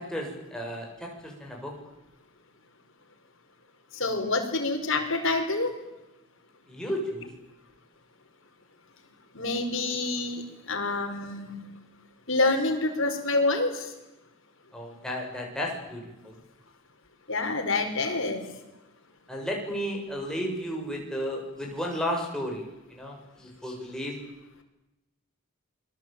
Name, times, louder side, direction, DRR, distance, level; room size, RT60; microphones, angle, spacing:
voice 1, 0.0-1.7 6.7-7.3 14.7-16.3 19.3-22.6 22.9-24.2, equal, 5° left, -1 dB, 7.0 m, -33 dB
voice 2, 3.9-5.7 9.3-11.6 12.3-13.9 17.3-18.5, left 2 dB, 60° left, 4 dB, 5.1 m, -27 dB
28.5 x 22.0 x 9.1 m, 0.98 s
head